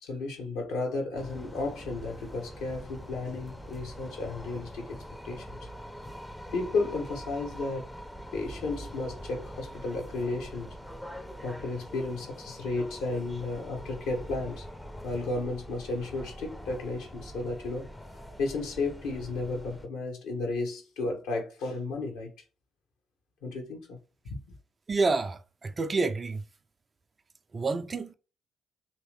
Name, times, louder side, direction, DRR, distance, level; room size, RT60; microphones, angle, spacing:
voice 1, 0.0-5.6 6.5-7.9 8.3-10.8 11.4-14.7 15.0-17.9 18.4-22.3 23.4-24.0 24.3-24.4, left 3 dB, 70° left, 1.0 m, -33 dB
sound 1, 1.1-19.9, equal, 10° left, 0.6 m, -44 dB
voice 2, 24.9-26.4 27.5-28.1, right 3 dB, 35° right, 0.4 m, -28 dB
3.1 x 2.9 x 3.1 m
figure-of-eight pair, 40°, 0 cm